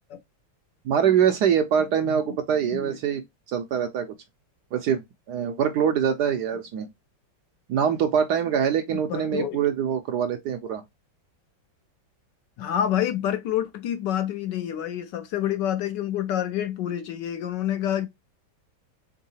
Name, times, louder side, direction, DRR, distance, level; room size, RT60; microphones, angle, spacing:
voice 1, 0.8-3.2 3.5-4.1 4.7-5.0 5.3-6.9 7.7-10.8, right 8 dB, 70° right, 1.0 m, -24 dB
voice 2, 1.8-2.4 2.7-3.0 9.1-9.6 12.6-18.1, left 10 dB, 70° left, 1.2 m, -28 dB
3.9 x 3.7 x 2.7 m
omnidirectional pair, 2.2 m